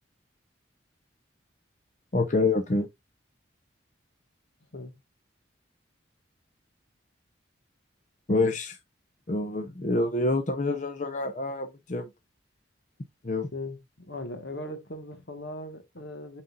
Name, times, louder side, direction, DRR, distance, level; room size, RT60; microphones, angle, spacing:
voice 1, 2.1-2.9 8.3-8.8 9.3-12.1 13.2-13.5, left 2 dB, 40° left, 0.7 m, -27 dB
voice 2, 13.5-16.4, left 1 dB, 65° left, 1.5 m, -39 dB
9.3 x 4.1 x 2.4 m
head